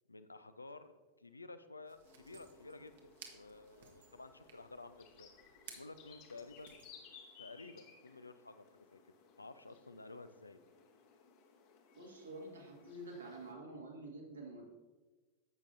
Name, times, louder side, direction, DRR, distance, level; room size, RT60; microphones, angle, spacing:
voice 1, 0.1-5.3 5.7-6.8 7.4-9.0 9.4-10.6, left 3 dB, 80° left, 11 dB, 0.5 m, -53 dB
sound 1, 1.8-6.9, right 7 dB, 60° right, 1.1 m, -59 dB
sound 2, 2.0-13.5, left 6 dB, 45° left, 1.1 m, -61 dB
voice 2, 11.9-14.6, right 2 dB, 75° right, -1 dB, 1.9 m, -48 dB
10.5 x 7.4 x 2.6 m, 1.2 s
figure-of-eight pair, 90°, 0 cm